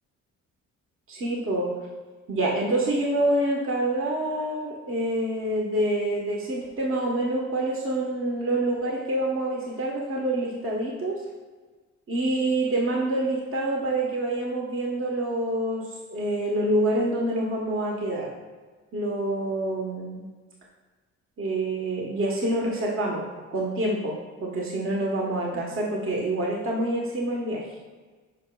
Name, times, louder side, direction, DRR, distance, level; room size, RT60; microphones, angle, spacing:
voice 1, 1.1-1.7 2.3-11.2 12.1-15.8 16.1-18.3 18.9-20.2 21.4-23.2 23.5-27.6, right 1 dB, 45° right, -2 dB, 1.3 m, -26 dB
10.5 x 5.0 x 2.3 m, 1.4 s
cardioid pair, 90°, 30 cm